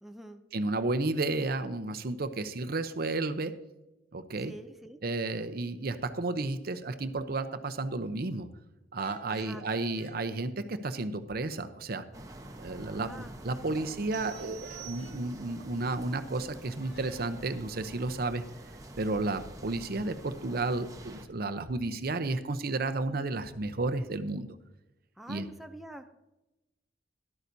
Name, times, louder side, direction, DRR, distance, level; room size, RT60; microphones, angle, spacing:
voice 1, 0.0-0.4 4.4-5.0 9.3-9.7 12.9-13.3 25.2-26.1, right 1 dB, ahead, 5 dB, 0.5 m, -46 dB
voice 2, 0.5-3.5 4.1-4.5 5.0-8.5 8.9-12.0 12.6-18.4 19.0-24.5 25.3-25.5, right 2 dB, 60° right, 9 dB, 0.7 m, -32 dB
sound 1, 9.0-10.1 14.3-15.2 16.8-17.2, right 1 dB, 80° left, 4.6 m, -50 dB
sound 2, 12.1-21.2, right 1 dB, 20° right, 1.0 m, -47 dB
sound 3, 14.1-15.6, right 18 dB, 90° right, 0.8 m, -48 dB
13.0 x 12.0 x 2.7 m, 0.96 s
head